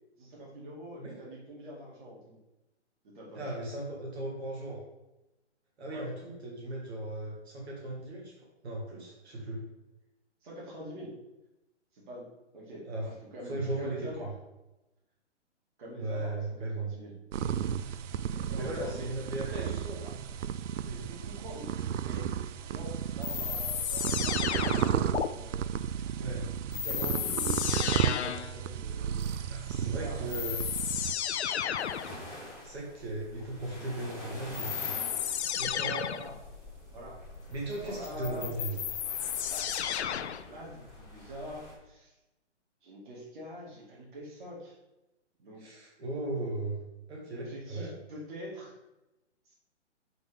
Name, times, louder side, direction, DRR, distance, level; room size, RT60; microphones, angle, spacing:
voice 1, 0.2-2.4 3.0-3.5 5.9-6.1 10.4-11.2 11.9-12.3 12.5-14.3 15.8-17.5 18.3-19.1 20.0-20.1 20.7-21.7 22.0-22.3 22.7-26.2 26.6-29.2 29.8-30.5 35.5-36.4 36.9-37.2 37.8-38.5 39.5-39.7 40.5-42.1 42.8-44.8 45.4-45.7 47.3-48.7 49.5-49.6, equal, 40° right, -4 dB, 2.6 m, -45 dB
voice 2, 3.3-4.8 5.8-8.3 8.6-9.7 12.8-13.1 13.4-14.1 16.0-16.9 18.5-20.0 20.8-21.1 26.2-26.5 29.5-30.6 32.6-35.0 35.5-35.9 37.5-38.8 45.6-46.8 47.1-47.9, right 1 dB, 65° right, -3 dB, 2.2 m, -37 dB
sound 1, 17.3-31.1, right 9 dB, 85° right, 0.5 m, -33 dB
sound 2, 23.2-25.3 26.7-28.6 29.8-29.9 30.3-32.2 34.5-36.3 38.0-40.5, left 9 dB, 65° left, 0.5 m, -33 dB
sound 3, 30.1-41.7, left 1 dB, 5° right, 1.2 m, -47 dB
7.7 x 3.6 x 5.2 m, 0.99 s
hypercardioid pair, 170°, 36 cm